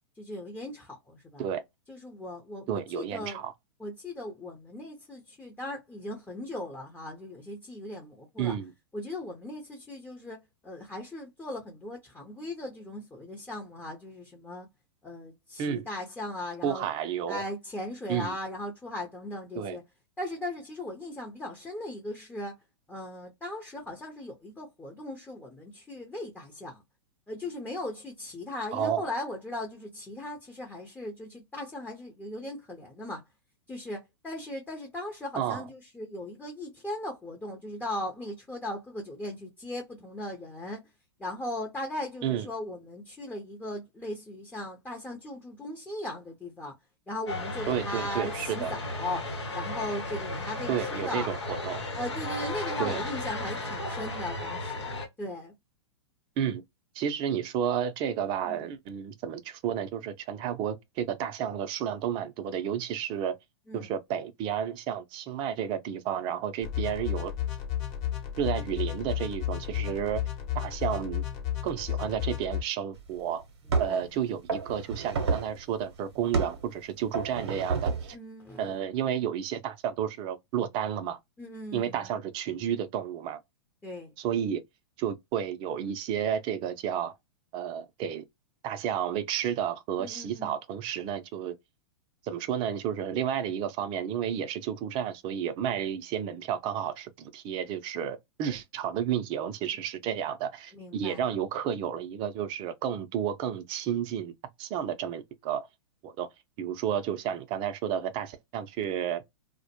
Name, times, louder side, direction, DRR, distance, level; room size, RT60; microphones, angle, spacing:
voice 1, 0.2-1.5 1.9-3.4 3.8-8.6 8.9-14.7 15.0-16.8 17.3-19.8 20.2-22.5 22.9-26.8 27.3-33.2 33.7-40.8 41.2-46.7 47.1-49.3 49.5-51.3 51.9-55.5 58.4-58.6 63.7-63.9 73.9-74.0 78.1-78.7 81.4-82.2 83.8-84.1 90.0-90.5 100.7-101.2, left 1 dB, 10° left, 0.7 m, -38 dB
voice 2, 2.7-3.5 8.4-8.7 15.6-15.9 16.6-17.4 18.1-18.3 19.6-19.8 28.7-29.1 35.4-35.6 42.2-42.5 47.7-48.7 50.7-51.8 52.8-53.0 56.4-56.6 56.9-63.4 63.7-67.3 68.4-70.2 70.5-71.2 71.6-73.4 73.8-78.2 78.6-81.2 81.7-83.4 84.2-84.6 85.0-87.1 87.5-88.2 88.6-91.5 92.2-104.3 104.6-105.7 106.0-106.3 106.6-109.2, right 9 dB, 35° right, 0.5 m, -31 dB
sound 1, 47.3-55.1, left 2 dB, 85° left, 1.0 m, -35 dB
sound 2, 66.6-72.6, left 11 dB, 45° left, 1.0 m, -33 dB
sound 3, 73.0-73.1 73.7-74.1 74.5-75.6 76.3-76.6 77.1-78.1, right 4 dB, 70° right, 0.7 m, -29 dB
2.1 x 2.0 x 2.8 m
hypercardioid pair, 110°, 14 cm